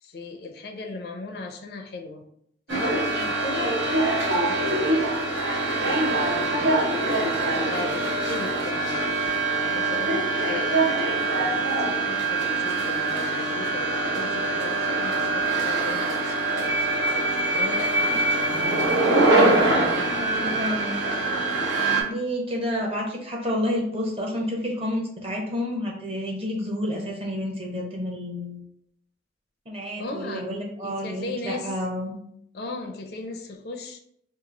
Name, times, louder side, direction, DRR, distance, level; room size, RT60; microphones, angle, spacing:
voice 1, 0.0-2.2 2.7-3.8 4.3-4.8 5.8-6.8 7.5-9.1 9.6-10.9 11.3-16.3 17.5-18.2 30.0-30.5 30.8-31.7 32.5-34.0, left 2 dB, 55° left, 4 dB, 0.4 m, -37 dB
sound 1, 2.7-22.0, right 2 dB, 80° right, 0.8 m, -24 dB
voice 2, 20.0-21.0 21.9-28.6 29.7-32.2, left 1 dB, 30° right, -1 dB, 0.8 m, -30 dB
2.9 x 2.3 x 3.8 m, 0.70 s
head